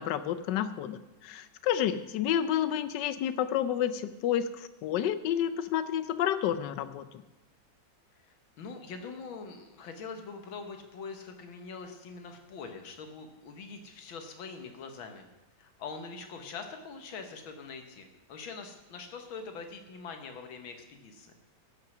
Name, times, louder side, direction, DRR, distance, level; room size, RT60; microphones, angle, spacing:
voice 1, 0.0-7.1, left 10 dB, 70° left, 12 dB, 1.2 m, -30 dB
voice 2, 8.2-15.3 15.6-21.3, left 4 dB, 85° left, 5 dB, 2.1 m, -43 dB
15.0 x 6.7 x 6.1 m, 1.1 s
omnidirectional pair, 2.1 m